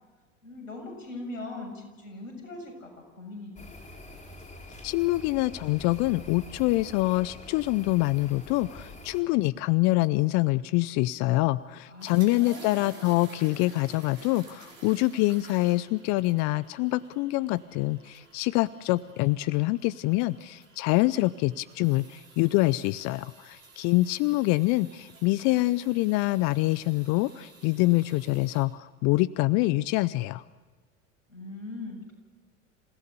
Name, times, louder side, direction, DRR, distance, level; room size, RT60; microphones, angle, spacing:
voice 1, 0.4-3.7 11.9-12.9 31.3-32.1, left 2 dB, 85° left, 2 dB, 7.0 m, -40 dB
sound 1, 3.6-9.2, left 2 dB, 20° left, 4.7 m, -45 dB
voice 2, 4.8-30.4, left 19 dB, 45° left, 19 dB, 0.6 m, -25 dB
sound 2, 12.0-28.6, right 3 dB, 85° right, 4.9 m, -53 dB
27.5 x 17.0 x 6.9 m, 1.4 s
hypercardioid pair, 80°, 39 cm